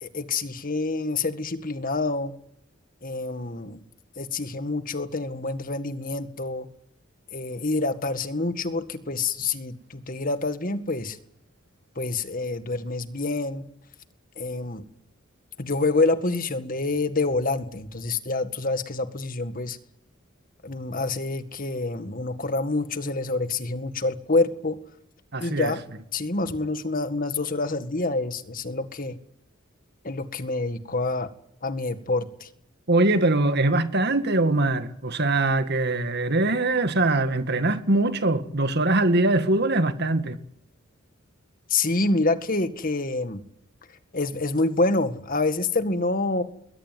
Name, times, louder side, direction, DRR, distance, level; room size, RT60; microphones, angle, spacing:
voice 1, 0.0-2.3 3.0-3.8 4.2-6.7 7.3-11.2 12.0-13.6 14.4-14.9 15.6-19.8 20.6-24.8 25.4-25.8 26.1-29.2 30.0-31.3 31.6-32.5 41.7-43.4 44.1-46.4, left 3 dB, 45° left, 1.9 m, -27 dB
voice 2, 25.3-25.7 32.9-40.4, right 2 dB, 55° right, 2.0 m, -22 dB
22.0 x 17.5 x 9.4 m
head